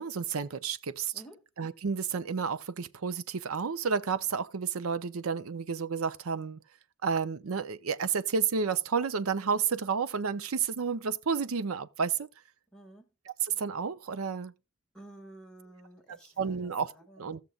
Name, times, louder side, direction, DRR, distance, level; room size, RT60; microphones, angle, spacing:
voice 1, 0.0-1.1 1.6-6.6 7.0-12.3 13.4-14.5 16.4-16.9 17.2-17.4, right 6 dB, 85° right, 0.6 m, -31 dB
voice 2, 1.1-1.4 12.7-13.1 14.9-17.4, right 1 dB, 5° left, 1.9 m, -51 dB
15.5 x 6.6 x 2.4 m
head